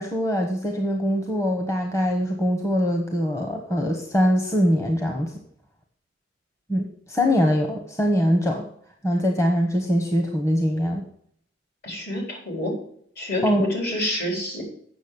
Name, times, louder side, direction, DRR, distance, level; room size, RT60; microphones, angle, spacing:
voice 1, 0.0-5.3 6.7-8.7 9.0-11.1 13.4-13.7, equal, 15° left, 2 dB, 1.0 m, -23 dB
voice 2, 11.8-12.7 13.2-14.6, left 1 dB, 55° left, 0 dB, 4.1 m, -28 dB
8.3 x 6.5 x 6.8 m, 0.65 s
head